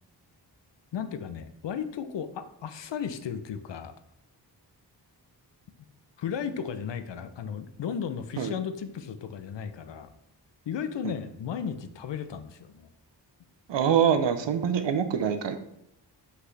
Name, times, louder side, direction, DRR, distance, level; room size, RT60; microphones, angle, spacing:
voice 1, 0.9-3.9 6.2-10.1 10.7-12.9, left 7 dB, 85° left, 10 dB, 0.7 m, -35 dB
voice 2, 13.7-15.6, right 8 dB, 85° right, 8 dB, 0.7 m, -25 dB
5.9 x 5.6 x 3.2 m, 0.74 s
cardioid pair, 60°, 42 cm